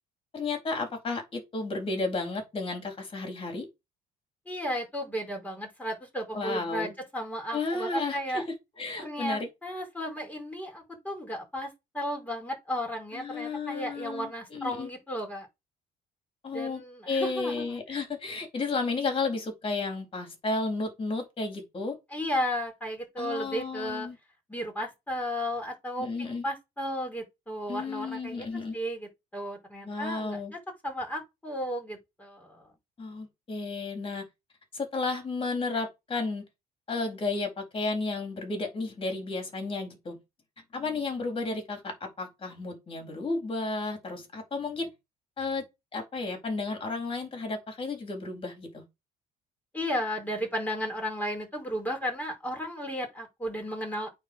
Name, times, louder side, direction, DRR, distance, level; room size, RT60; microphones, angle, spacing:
voice 1, 0.3-3.7 6.3-6.9 7.5-8.5 8.8-9.5 13.1-14.9 16.4-22.0 23.2-24.2 26.0-26.4 27.7-28.8 29.8-30.5 33.0-34.2 34.7-36.4 36.9-40.2 40.7-44.9 45.4-45.6 45.9-48.8, left 3 dB, 30° left, 4.2 m, -33 dB
voice 2, 4.4-8.4 9.0-15.5 16.5-18.0 22.1-24.1 24.5-32.7 49.7-54.1, equal, 10° left, 4.9 m, -34 dB
8.7 x 4.3 x 6.5 m
cardioid pair, 110°, 17 cm